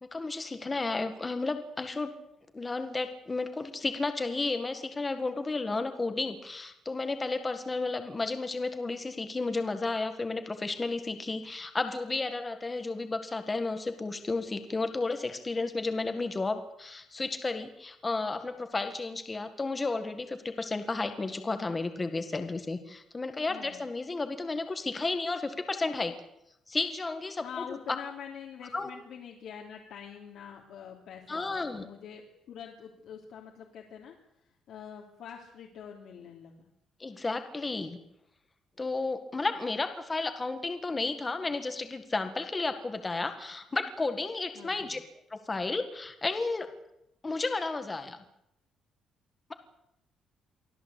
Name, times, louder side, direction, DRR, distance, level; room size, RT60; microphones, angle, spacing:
voice 1, 0.0-2.1 2.5-26.1 26.7-27.8 28.7-28.9 31.3-31.9 37.0-38.0 38.8-45.0 45.3-46.7 47.2-48.2, left 3 dB, 15° left, 8 dB, 1.7 m, -32 dB
voice 2, 23.5-23.8 27.4-34.1 34.7-36.5 44.5-44.9, left 8 dB, 65° left, -1 dB, 3.2 m, -45 dB
24.5 x 16.0 x 8.3 m, 0.79 s
cardioid pair, 170°, 0 cm